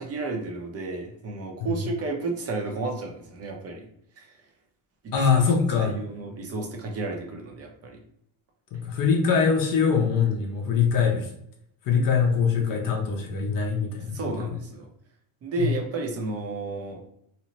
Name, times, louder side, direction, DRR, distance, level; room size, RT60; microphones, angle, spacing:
voice 1, 0.0-3.9 4.2-4.4 5.0-5.4 5.8-8.0 14.1-14.9 15.4-17.0, right 3 dB, 30° right, 2 dB, 0.6 m, -32 dB
voice 2, 5.1-5.9 8.7-11.3 11.9-14.3, left 6 dB, 45° left, 1 dB, 0.6 m, -23 dB
2.8 x 2.0 x 2.9 m, 0.71 s
cardioid pair, 135°, 48 cm